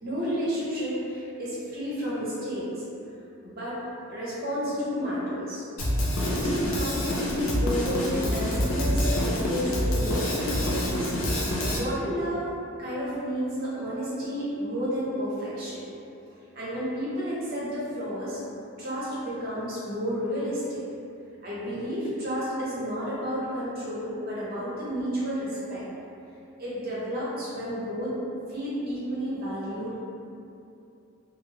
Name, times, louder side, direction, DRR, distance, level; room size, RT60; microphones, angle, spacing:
voice 1, 0.0-2.7 3.4-3.8 4.1-5.6 6.2-11.2 11.7-12.5 12.8-15.8 16.5-18.4 18.8-20.8 21.4-25.8 26.6-28.1 28.5-30.0, equal, 45° right, -9 dB, 0.8 m, -31 dB
Drum kit, 5.8-11.8, equal, 75° left, 0.5 m, -26 dB
2.4 x 2.0 x 3.2 m, 2.7 s
head